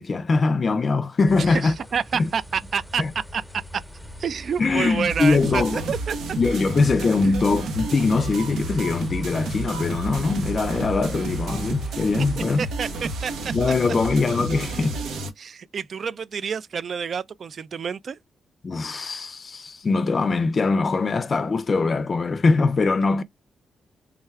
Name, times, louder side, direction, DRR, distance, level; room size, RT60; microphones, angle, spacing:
voice 1, 0.0-1.8 2.2-2.3 3.0-3.1 4.6-5.8 6.4-12.6 13.5-15.0 18.6-23.2, left 3 dB, 45° left, 0.4 m, -22 dB
sound 1, 1.2-13.6, equal, ahead, 0.7 m, -41 dB
voice 2, 1.4-3.0 3.3-3.4 3.7-3.8 4.2-6.2 7.2-7.4 12.3-13.3 15.4-18.2, right 6 dB, 60° right, 0.3 m, -28 dB
sound 2, 5.1-15.3, right 2 dB, 85° right, 0.7 m, -31 dB
3.5 x 2.3 x 3.2 m
cardioid pair, 75°, 0 cm